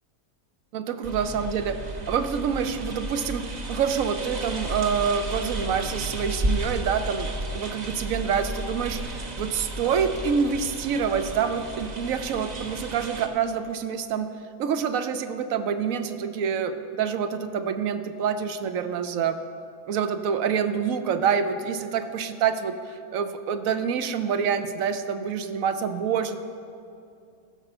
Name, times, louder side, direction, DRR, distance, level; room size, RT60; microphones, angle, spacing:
voice 1, 0.7-1.8 2.1-14.3 14.6-19.4 19.9-26.4, right 7 dB, 70° right, 10 dB, 1.0 m, -27 dB
sound 1, 1.0-13.3, right 1 dB, 35° right, 0.8 m, -33 dB
15.0 x 6.8 x 5.4 m, 2.5 s
omnidirectional pair, 1.6 m